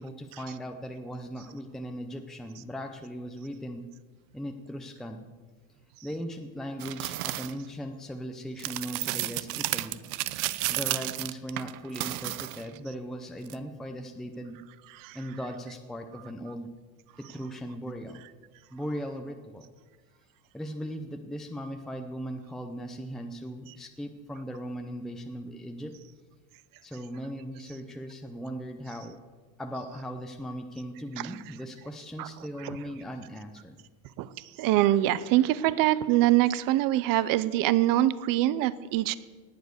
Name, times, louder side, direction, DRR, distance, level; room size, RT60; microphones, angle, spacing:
voice 1, 0.0-3.9 4.3-5.3 6.0-10.0 10.4-14.6 15.1-16.7 17.2-18.2 18.7-19.7 20.5-25.9 26.8-29.2 29.6-33.8, equal, ahead, 4 dB, 0.7 m, -38 dB
sound 1, 6.8-7.5 8.6-12.8 13.5-13.6, right 18 dB, 85° right, 0.7 m, -32 dB
voice 2, 34.6-39.1, right 14 dB, 50° right, 17 dB, 0.8 m, -24 dB
19.0 x 7.3 x 6.6 m, 1.4 s
supercardioid pair, 130°, 42 cm